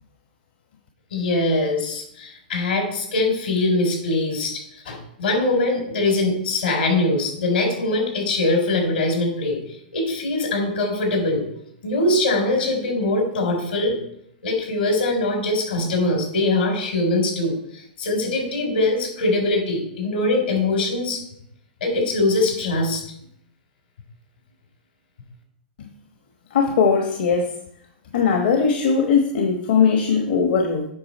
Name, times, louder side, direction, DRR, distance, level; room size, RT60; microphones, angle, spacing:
voice 1, 1.1-9.6 9.9-11.4 11.8-14.0 14.4-21.2 21.8-23.0, left 2 dB, 85° left, 1 dB, 3.9 m, -22 dB
voice 2, 26.5-27.5 28.1-30.9, left 5 dB, 65° left, 3 dB, 1.2 m, -19 dB
8.6 x 5.9 x 4.3 m, 0.74 s
hypercardioid pair, 130°, 5 cm